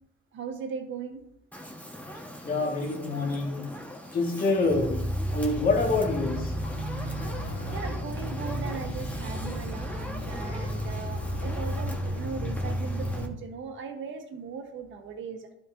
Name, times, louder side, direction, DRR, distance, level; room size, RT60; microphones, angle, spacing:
voice 1, 0.3-1.2 7.4-15.5, right 5 dB, 70° right, 4 dB, 1.4 m, -38 dB
Fire, 1.5-13.3, equal, 10° left, 1.5 m, -42 dB
voice 2, 2.4-3.8 4.1-7.7, left 3 dB, 45° left, -1 dB, 2.1 m, -28 dB
sound 1, 4.6-13.3, equal, 70° left, 2.5 m, -32 dB
11.5 x 5.3 x 2.8 m, 0.80 s
cardioid pair, 90°, 20 cm